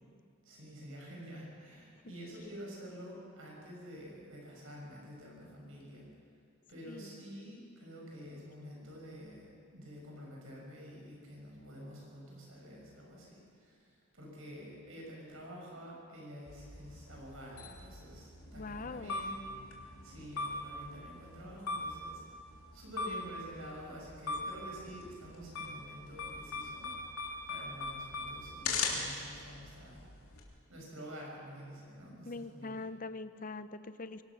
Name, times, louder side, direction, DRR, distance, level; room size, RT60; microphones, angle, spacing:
voice 1, 0.4-6.1 6.7-19.4 20.0-22.2 22.7-30.4 30.7-32.9, equal, 65° right, -2 dB, 6.9 m, -49 dB
voice 2, 6.9-7.2 18.5-19.2 32.2-34.2, left 3 dB, 40° left, 12 dB, 0.7 m, -43 dB
sound 1, 16.5-30.4, left 3 dB, 80° left, 3.3 m, -41 dB
24.5 x 18.0 x 6.3 m, 2.3 s
head